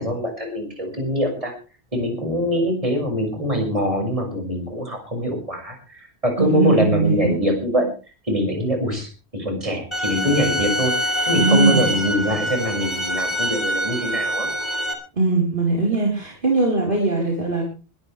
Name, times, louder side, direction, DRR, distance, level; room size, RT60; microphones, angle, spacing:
voice 1, 0.0-1.5 1.9-7.9 8.3-10.9 11.2-14.5, equal, 30° right, 2 dB, 6.3 m, -23 dB
voice 2, 6.4-7.4 11.3-11.9 15.2-17.6, right 3 dB, 55° right, -2 dB, 4.6 m, -20 dB
sound 1, 9.9-14.9, equal, 25° left, 3.5 m, -25 dB
21.5 x 13.5 x 3.4 m, 0.34 s
omnidirectional pair, 1.1 m